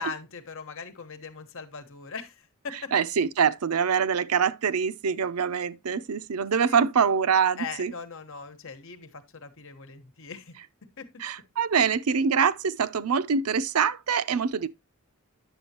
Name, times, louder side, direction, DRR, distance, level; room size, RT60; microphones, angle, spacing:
voice 1, 0.0-2.9 6.6-6.8 7.6-10.5 11.0-11.1, left 5 dB, 65° left, 1.3 m, -39 dB
voice 2, 2.9-7.9 11.2-14.7, right 6 dB, 90° right, 0.6 m, -24 dB
10.0 x 7.1 x 2.9 m
head